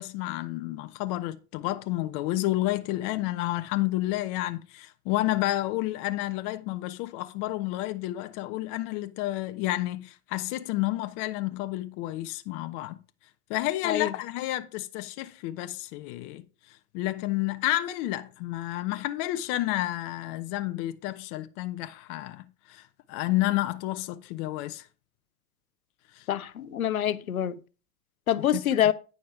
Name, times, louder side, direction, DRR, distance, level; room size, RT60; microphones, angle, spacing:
voice 1, 0.0-13.0 13.5-16.4 16.9-22.8 23.1-24.9 26.1-26.2 28.5-28.8, left 16 dB, 50° left, 0.7 m, -30 dB
voice 2, 26.3-27.6 28.3-28.9, left 10 dB, 85° left, 0.7 m, -26 dB
9.4 x 5.2 x 4.5 m
hypercardioid pair, 80°, 41 cm